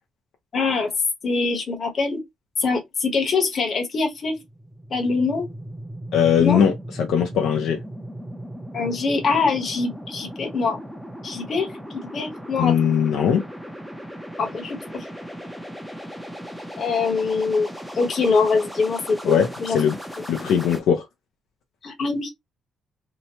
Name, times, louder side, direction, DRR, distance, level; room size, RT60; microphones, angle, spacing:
voice 1, 0.5-0.9 1.2-2.2 2.6-4.4 4.9-5.5 6.4-6.6 8.7-10.8 11.2-11.7 11.9-12.7 14.4-15.1 16.8-19.8 21.8-22.3, left 4 dB, 45° left, 1.1 m, -24 dB
sound 1, 4.3-20.8, equal, ahead, 0.6 m, -37 dB
voice 2, 6.1-7.8 12.6-13.4 19.2-20.0 20.3-21.0, left 8 dB, 80° left, 0.6 m, -20 dB
2.9 x 2.1 x 2.8 m
cardioid pair, 115°, 0 cm